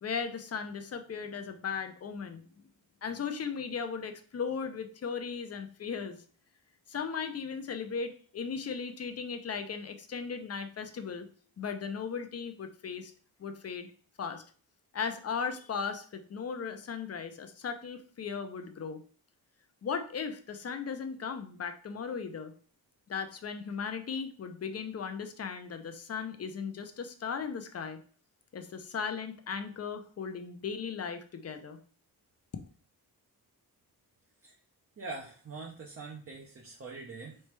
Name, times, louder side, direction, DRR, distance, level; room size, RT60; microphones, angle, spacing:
voice 1, 0.0-2.4 3.0-6.2 6.9-11.3 11.6-13.1 13.4-13.9 14.2-14.4 14.9-19.0 19.8-22.5 23.1-28.0 28.5-31.8, left 6 dB, 40° left, 8 dB, 0.6 m, -37 dB
voice 2, 35.0-37.4, right 3 dB, 35° right, 0 dB, 0.7 m, -43 dB
4.2 x 3.3 x 3.2 m, 0.43 s
wide cardioid pair, 135°, 38 cm